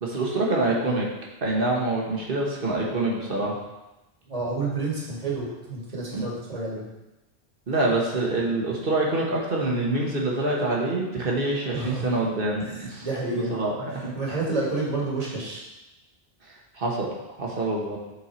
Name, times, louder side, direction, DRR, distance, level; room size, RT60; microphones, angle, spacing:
voice 1, 0.0-1.1 1.4-3.6 6.1-6.3 7.7-14.1 16.7-17.1 17.4-18.0, right 2 dB, 55° right, -2 dB, 1.4 m, -26 dB
voice 2, 4.3-6.9 11.7-12.1 12.6-13.6 14.0-15.6, right 3 dB, 35° right, -5 dB, 1.8 m, -29 dB
7.3 x 4.5 x 4.4 m, 1.0 s
omnidirectional pair, 1.1 m